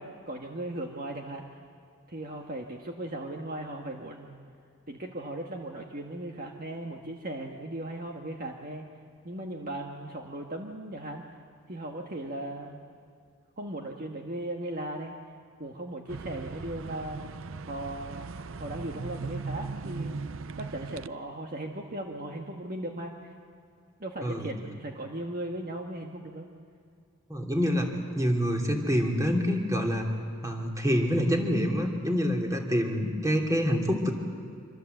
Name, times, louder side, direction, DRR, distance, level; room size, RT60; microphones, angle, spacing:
voice 1, 0.0-1.4 2.1-4.4 4.9-8.8 9.2-11.2 11.7-12.8 13.6-15.1 15.6-17.3 17.7-18.3 18.6-20.2 20.6-23.3 24.0-26.5, right 1 dB, 40° right, 1 dB, 1.5 m, -37 dB
sound 1, 16.1-21.1, right 4 dB, 65° right, 0.6 m, -38 dB
voice 2, 24.2-24.5 27.3-30.1 30.4-34.1, equal, 15° right, 1 dB, 2.9 m, -26 dB
26.0 x 25.5 x 8.0 m, 2.4 s
head